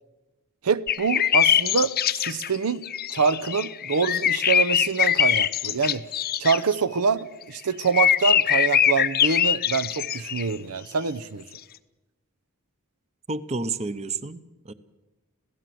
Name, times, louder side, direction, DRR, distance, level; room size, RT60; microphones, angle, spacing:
voice 1, 0.6-2.8 3.1-6.0 6.4-7.2 7.5-11.5, right 5 dB, 80° right, 0.7 m, -25 dB
sound 1, 0.9-2.6 2.8-6.6 7.4-10.5 11.6-11.7, left 9 dB, 40° left, 0.7 m, -23 dB
voice 2, 13.3-14.7, right 3 dB, 30° right, 0.8 m, -31 dB
26.5 x 17.0 x 7.7 m
head